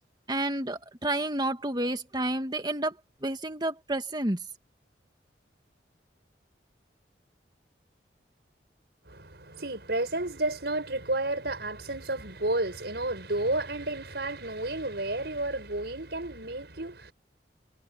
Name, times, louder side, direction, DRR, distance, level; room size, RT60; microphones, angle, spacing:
voice 1, 0.3-3.0 3.2-4.4, right 1 dB, 25° right, 1.9 m, -30 dB
voice 2, 9.1-17.1, right 2 dB, 65° right, 7.1 m, -31 dB
head